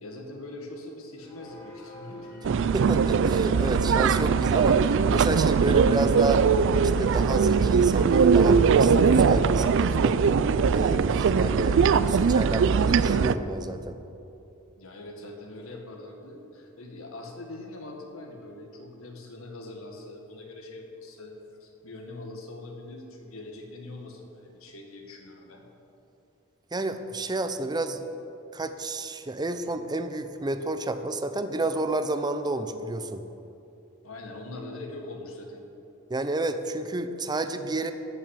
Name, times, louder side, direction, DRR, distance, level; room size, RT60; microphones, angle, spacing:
voice 1, 0.0-2.3 14.8-21.3 21.6-25.6 34.0-35.6, left 2 dB, 75° left, 1 dB, 1.9 m, -42 dB
sound 1, 1.2-12.0, left 1 dB, 15° left, 3.0 m, -44 dB
sound 2, 2.4-13.4, right 5 dB, 65° right, 0.4 m, -21 dB
voice 2, 2.7-6.4 7.0-10.2 10.7-11.8 12.1-14.0 26.7-28.0 28.5-33.2 36.1-37.9, right 2 dB, 20° right, 9 dB, 0.6 m, -30 dB
14.0 x 6.0 x 8.3 m, 2.7 s
head